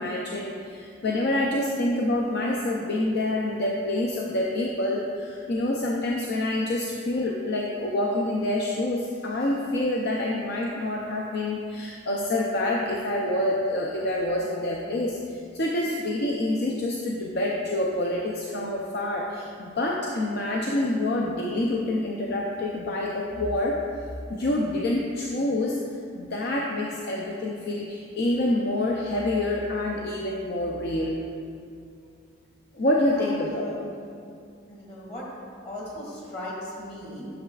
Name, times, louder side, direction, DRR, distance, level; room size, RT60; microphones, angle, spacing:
voice 1, 0.0-23.8 24.3-25.8 26.1-31.2 32.7-33.7, left 1 dB, 55° left, -1 dB, 0.5 m, -27 dB
voice 2, 33.1-33.9 34.7-35.3 35.6-37.3, left 1 dB, 35° left, -5 dB, 1.9 m, -38 dB
11.5 x 6.7 x 2.4 m, 2.4 s
head